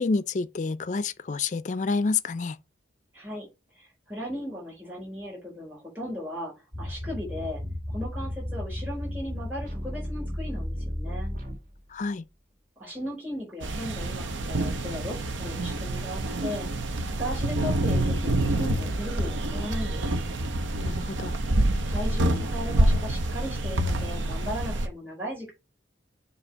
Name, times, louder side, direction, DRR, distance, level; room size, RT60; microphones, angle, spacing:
voice 1, 0.0-2.6 11.9-12.3 20.8-21.3, left 4 dB, 40° left, 0.4 m, -28 dB
voice 2, 3.1-3.5 3.8-6.5 6.8-7.6 7.9-11.4 12.8-20.1 21.8-25.5, equal, 10° right, 4.0 m, -37 dB
sound 1, 6.7-12.0, left 1 dB, 45° right, 2.3 m, -34 dB
sound 2, 13.6-24.9, right 1 dB, 85° right, 0.8 m, -27 dB
7.1 x 2.8 x 5.2 m
head